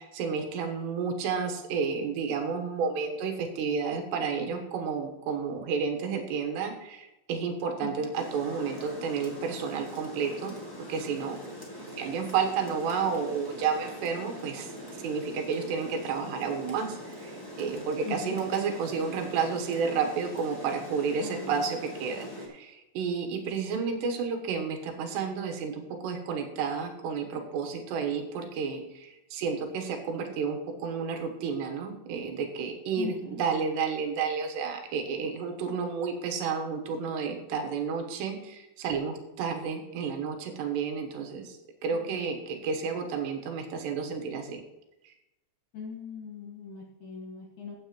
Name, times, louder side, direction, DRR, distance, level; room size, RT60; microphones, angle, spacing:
voice 1, 0.1-11.4 12.0-14.7 15.0-17.3 17.6-41.6 41.8-44.6, right 5 dB, 85° right, 3 dB, 3.4 m, -31 dB
voice 2, 7.8-8.1 18.0-18.4 21.2-21.5 33.0-33.4 42.0-42.3 45.7-47.8, left 6 dB, 60° left, -1 dB, 2.4 m, -40 dB
Rain, 8.1-22.5, left 1 dB, 15° left, 0.6 m, -42 dB
14.5 x 7.8 x 3.0 m, 0.96 s
omnidirectional pair, 4.9 m